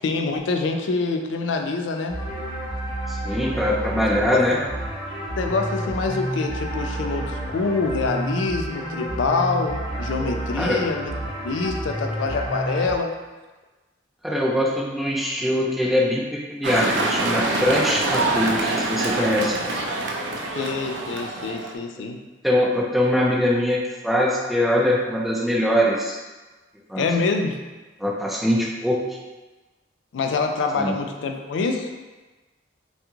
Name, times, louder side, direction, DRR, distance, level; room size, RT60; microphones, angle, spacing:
voice 1, 0.0-2.2 4.3-4.4 5.4-13.1 20.6-22.2 27.0-27.6 30.1-31.9, left 4 dB, 90° left, 4 dB, 0.4 m, -25 dB
sound 1, 2.1-12.9, right 1 dB, 25° left, 0.7 m, -30 dB
voice 2, 3.1-4.6 10.6-10.8 14.2-19.6 22.4-26.2 26.9-27.0 28.0-29.0 30.8-31.0, left 1 dB, ahead, -3 dB, 0.4 m, -22 dB
sound 2, 16.6-21.7, right 2 dB, 80° right, 0.4 m, -25 dB
3.5 x 2.3 x 2.9 m, 1.2 s
head